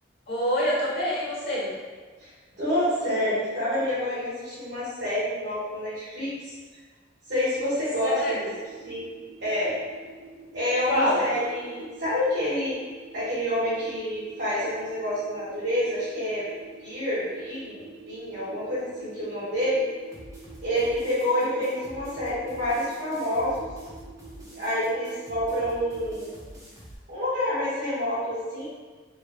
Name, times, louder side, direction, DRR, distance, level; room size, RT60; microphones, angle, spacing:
voice 1, 0.3-1.7 8.0-8.5 10.9-11.2, equal, 55° left, -7 dB, 1.4 m, -26 dB
voice 2, 2.6-6.5 7.3-8.5 8.8-9.0 9.4-9.7 10.5-12.8 13.1-16.5 16.8-19.8 20.6-23.7 24.5-26.4 27.1-28.6, left 1 dB, 70° right, -10 dB, 1.3 m, -28 dB
sound 1, 8.0-26.3, right 3 dB, 35° right, 1.4 m, -48 dB
sound 2, 20.1-26.9, equal, 20° right, 0.8 m, -47 dB
4.8 x 3.2 x 2.3 m, 1.4 s
head